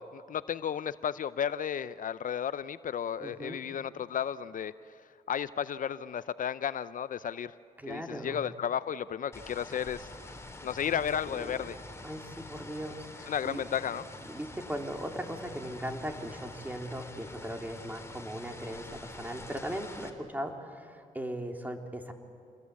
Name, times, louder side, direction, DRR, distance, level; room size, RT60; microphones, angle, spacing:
voice 1, 0.0-4.7 5.3-7.5 7.8-10.1 10.6-11.8 13.3-14.0, left 8 dB, 65° left, 15 dB, 0.6 m, -33 dB
voice 2, 3.2-3.6 7.8-8.4 10.8-11.7 12.0-13.6 14.2-22.1, equal, 10° right, 3 dB, 3.5 m, -39 dB
sound 1, 9.3-20.1, left 2 dB, 15° left, 3.2 m, -46 dB
29.0 x 21.0 x 8.5 m, 2.4 s
cardioid pair, 60°, 15 cm